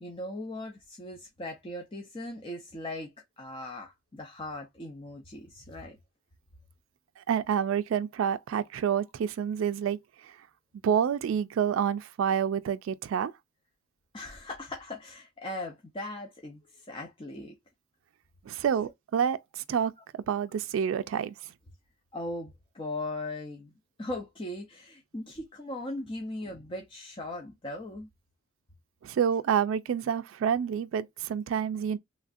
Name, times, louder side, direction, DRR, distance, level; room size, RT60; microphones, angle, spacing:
voice 1, 0.0-3.1 3.4-6.0 14.1-17.5 22.1-23.7 24.0-28.1, left 1 dB, 25° left, 0.5 m, -39 dB
voice 2, 7.2-10.0 10.2-10.3 10.8-13.3 18.5-21.3 29.0-32.0, right 8 dB, 85° right, 0.3 m, -28 dB
3.2 x 2.4 x 2.5 m
head